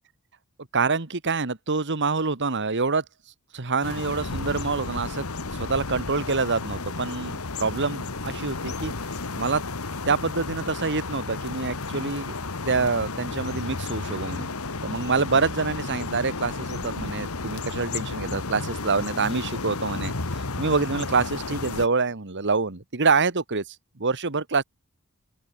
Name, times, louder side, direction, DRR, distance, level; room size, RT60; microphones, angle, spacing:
voice 1, 0.7-3.0 3.5-5.2 5.6-8.9 9.3-9.6 10.1-12.3 12.7-14.5 14.8-23.6 24.0-24.6, right 4 dB, 55° right, 1.7 m, -26 dB
sound 1, 3.8-21.9, left 3 dB, 75° left, 1.7 m, -32 dB
open air
head